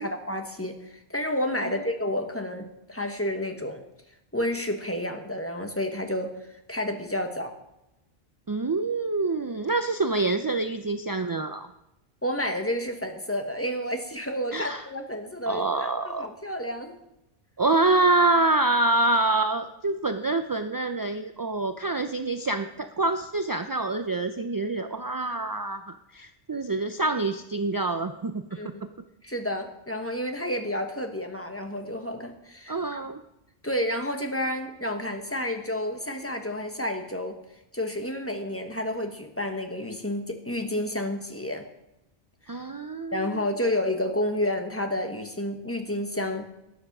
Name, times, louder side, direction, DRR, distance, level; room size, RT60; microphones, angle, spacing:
voice 1, 0.0-3.8 4.3-6.3 6.7-7.5 12.2-16.9 28.5-28.8 29.2-33.0 33.6-37.4 37.7-41.7 43.1-46.5, left 1 dB, 15° left, 5 dB, 1.2 m, -30 dB
voice 2, 8.5-11.7 14.5-14.8 15.5-16.3 17.6-28.7 32.7-33.2 42.5-43.4, right 2 dB, 35° right, 8 dB, 0.3 m, -26 dB
12.5 x 10.0 x 6.0 m, 0.89 s
omnidirectional pair, 1.1 m